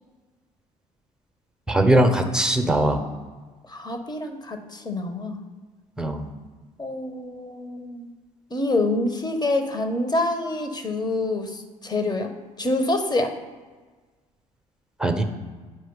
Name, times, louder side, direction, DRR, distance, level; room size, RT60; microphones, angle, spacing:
voice 1, 1.7-3.0 6.0-6.3 15.0-15.2, right 1 dB, 5° right, 5 dB, 1.1 m, -20 dB
voice 2, 3.7-5.4 6.8-8.1 8.5-12.3 12.6-13.3, left 2 dB, 20° left, 6 dB, 1.3 m, -26 dB
10.0 x 5.0 x 4.1 m, 1.4 s
figure-of-eight pair, 50°, 18 cm